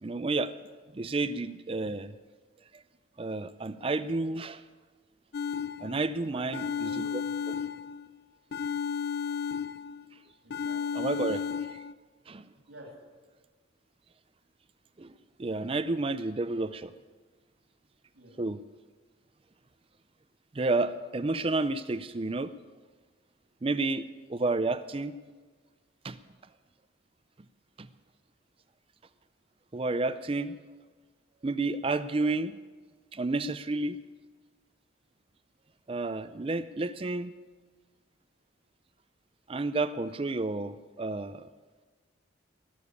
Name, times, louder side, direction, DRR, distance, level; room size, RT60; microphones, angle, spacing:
voice 1, 0.0-0.6 0.9-2.1 2.7-2.8 3.2-4.6 5.8-7.2 10.9-11.8 12.3-12.4 15.0-16.9 18.4-18.6 20.5-22.5 23.6-25.1 26.0-26.2 27.8-27.9 29.7-30.6 31.4-32.6 33.1-34.0 35.9-37.3 39.5-41.5, right 3 dB, 30° right, 13 dB, 0.4 m, -31 dB
sound 1, 5.3-6.1 6.5-8.1 8.5-10.1 10.5-11.9, left 6 dB, 55° left, 0.4 m, -33 dB
voice 2, 6.2-7.6 10.4-11.0 12.7-12.9 18.1-18.3, right 1 dB, 80° right, -2 dB, 3.2 m, -50 dB
19.0 x 7.0 x 9.7 m, 1.4 s
head